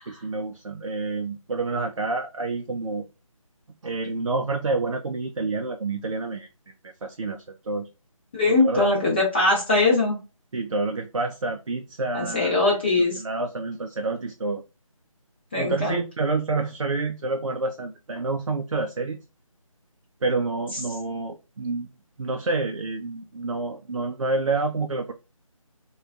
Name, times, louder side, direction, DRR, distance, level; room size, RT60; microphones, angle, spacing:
voice 1, 0.1-3.0 3.8-6.5 6.8-7.9 8.5-8.9 10.5-14.6 15.6-19.2 20.2-21.9 22.2-25.1, right 3 dB, 60° right, 0.4 m, -28 dB
voice 2, 8.3-10.2 12.1-13.2 15.5-16.0, left 2 dB, 20° left, 0.8 m, -21 dB
3.2 x 2.3 x 2.4 m
figure-of-eight pair, 155°, 18 cm